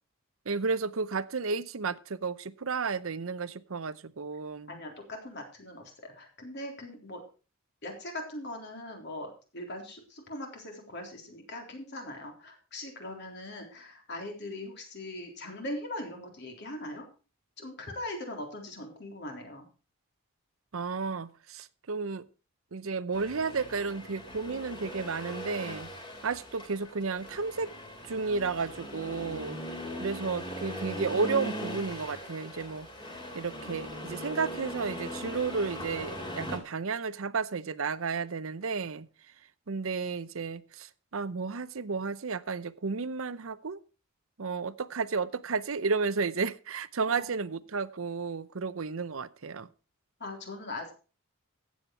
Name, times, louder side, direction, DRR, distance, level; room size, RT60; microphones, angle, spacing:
voice 1, 0.5-4.8 20.7-22.2 22.7-25.9 26.2-27.7 28.1-29.6 30.0-32.9 33.3-39.1 39.7-43.8 44.4-49.7, right 4 dB, 75° right, 15 dB, 0.7 m, -32 dB
voice 2, 4.7-7.2 7.8-17.0 17.6-19.7 47.1-47.5 50.2-50.9, left 1 dB, 55° left, 2 dB, 3.8 m, -41 dB
Accelerating revving vroom, 23.1-36.6, equal, 25° left, 3.0 m, -40 dB
14.5 x 8.7 x 4.6 m, 0.36 s
head